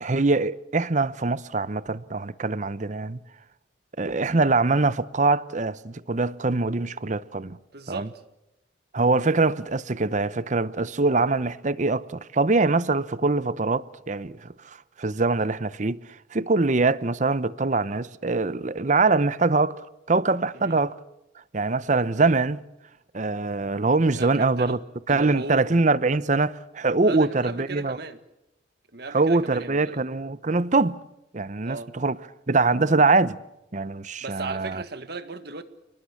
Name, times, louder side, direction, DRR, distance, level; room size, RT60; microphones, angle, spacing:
voice 1, 0.0-3.2 4.0-7.6 7.9-8.1 8.9-14.5 15.0-16.0 16.3-19.8 20.1-20.9 21.5-22.6 23.1-24.8 25.1-28.0 29.1-31.0 31.3-32.2 32.5-33.4 33.7-34.8, right 3 dB, 40° right, 0.8 m, -23 dB
voice 2, 7.7-8.2 20.5-20.8 24.1-24.8 25.1-25.6 27.0-28.2 28.9-30.0 31.6-31.9 34.2-35.6, right 3 dB, 60° right, 1.8 m, -37 dB
29.5 x 19.5 x 7.2 m
head